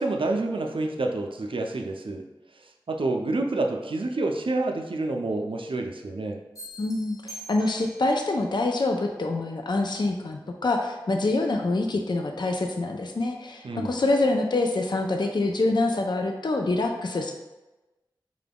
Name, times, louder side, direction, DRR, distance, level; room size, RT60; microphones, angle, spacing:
voice 1, 0.0-2.3 2.9-6.4 13.6-13.9, right 2 dB, 80° right, 3 dB, 0.4 m, -28 dB
sound 1, 6.5-8.2, equal, 40° left, 1.0 m, -44 dB
voice 2, 6.8-17.3, left 2 dB, 55° left, 3 dB, 0.4 m, -26 dB
4.9 x 2.2 x 3.4 m, 1.1 s
wide cardioid pair, 60°, 9 cm